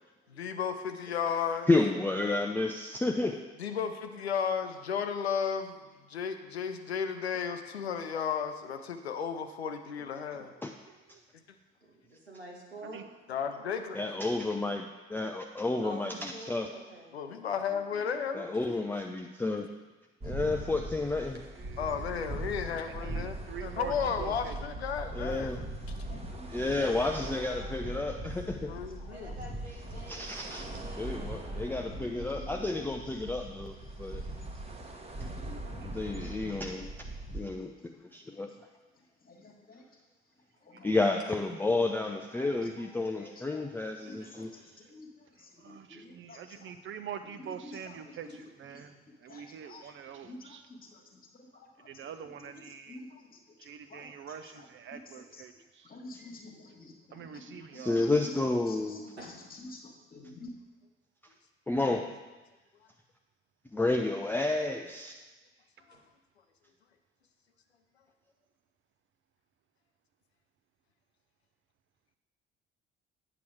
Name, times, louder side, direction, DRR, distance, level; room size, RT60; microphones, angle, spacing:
voice 1, 0.3-1.7 3.6-5.7 6.1-10.5 13.3-14.0 17.1-18.8 21.8-23.3 23.6-25.6 28.6-29.3 65.9-66.0, left 7 dB, 80° left, 7 dB, 0.5 m, -34 dB
voice 2, 1.7-3.4 10.6-10.7 13.9-16.7 18.3-19.7 20.2-21.4 25.1-25.6 26.5-28.7 30.1-30.7 31.0-34.2 35.8-36.9 37.3-38.5 40.8-44.5 57.7-59.1 61.7-62.0 63.7-65.2, left 2 dB, 5° left, 3 dB, 0.4 m, -31 dB
voice 3, 10.9-11.2 12.8-13.0 21.6-22.0 22.9-24.6 35.8-36.0 36.5-36.6 40.7-40.8 44.6-44.7 45.4-50.7 51.8-53.0 53.6-56.0 57.1-58.1, right 8 dB, 40° right, 9 dB, 0.6 m, -45 dB
voice 4, 11.8-13.1 15.8-17.5 18.5-18.6 26.7-28.2 29.1-32.3 42.5-42.6 44.2-44.5 59.2-59.3 65.9-66.0, right 1 dB, 85° right, -1 dB, 1.0 m, -49 dB
sound 1, 20.2-37.4, right 1 dB, 20° right, 1.2 m, -40 dB
voice 5, 26.0-26.6 29.0-29.1 29.9-30.1 31.2-31.3 32.0-32.4 35.2-36.6 39.3-39.8 40.6-40.9 42.3-42.4 43.1-43.6 44.1-44.4 44.9-45.1 45.4-46.4 47.6-47.8 48.0-48.1 48.7-48.9 49.3-49.9 50.2-51.9 52.9-53.4 53.9-54.3 54.9-55.0 55.8-58.4 58.7-59.1 59.6-60.5, left 2 dB, 30° left, 2 dB, 1.6 m, -49 dB
8.4 x 5.8 x 4.7 m, 1.2 s
figure-of-eight pair, 50°, 32 cm